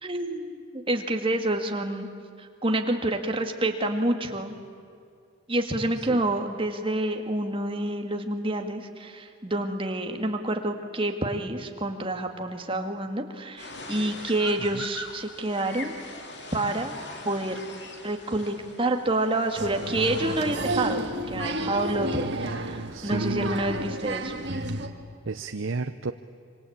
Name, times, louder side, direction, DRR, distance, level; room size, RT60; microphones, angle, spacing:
voice 1, 0.0-2.1 2.4-4.6 5.5-15.9 16.5-16.9 17.3-17.6 18.0-24.4, right 1 dB, 25° right, 4 dB, 2.1 m, -28 dB
sound 1, 13.6-20.6, left 2 dB, 55° left, 3.1 m, -41 dB
Applause, 19.6-24.9, right 1 dB, 55° right, 1.9 m, -31 dB
voice 2, 21.9-23.6 25.3-26.1, right 3 dB, 75° right, 9 dB, 0.7 m, -32 dB
26.5 x 25.5 x 8.8 m, 2.2 s
head